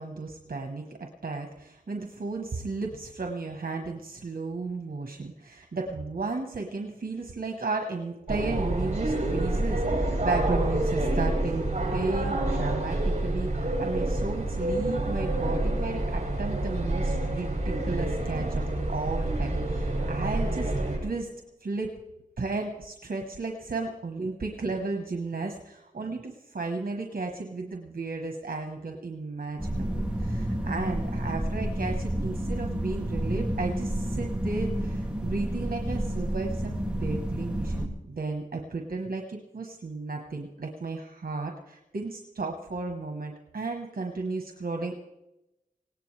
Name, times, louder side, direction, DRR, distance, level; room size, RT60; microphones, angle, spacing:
voice 1, 0.0-20.7 21.0-21.3 21.6-21.9 22.4-45.0, right 3 dB, 85° right, 3 dB, 1.2 m, -34 dB
sound 1, 8.3-21.0, right 1 dB, 50° right, 6.7 m, -28 dB
sound 2, 29.6-37.9, right 1 dB, 5° right, 2.2 m, -30 dB
19.0 x 17.5 x 3.3 m, 0.92 s
wide cardioid pair, 55°, 15 cm